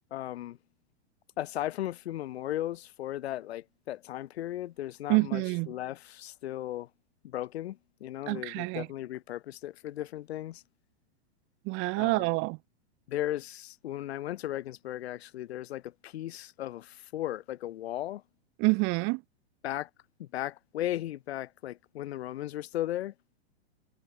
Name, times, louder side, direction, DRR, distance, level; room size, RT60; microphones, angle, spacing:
voice 1, 0.1-0.6 1.4-6.9 7.2-10.6 11.9-12.3 13.1-18.2 19.6-19.9 20.2-23.1, left 13 dB, 70° left, 2.3 m, -36 dB
voice 2, 5.1-5.7 8.3-8.9 11.6-12.6 18.6-19.2, right 29 dB, 35° right, 1.1 m, -27 dB
hypercardioid pair, 135°, 33 cm